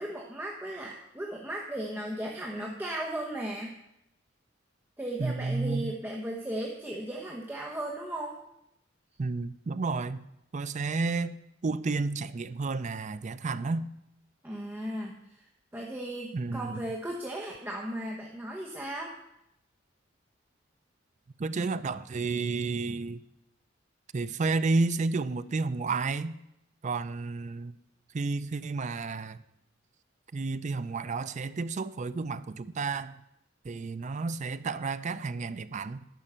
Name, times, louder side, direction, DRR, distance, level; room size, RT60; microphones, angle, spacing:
voice 1, 0.0-3.7 5.0-8.4 14.4-15.5 15.7-19.1, right 1 dB, 10° right, -2 dB, 1.0 m, -36 dB
voice 2, 5.2-5.9 9.2-10.3 10.5-11.4 11.6-13.9 16.3-16.8 21.4-23.2 24.1-26.4 26.8-27.7 28.1-29.4 30.3-33.2 33.6-36.1, right 3 dB, 40° right, 14 dB, 0.4 m, -31 dB
10.5 x 5.5 x 7.4 m, 0.82 s
head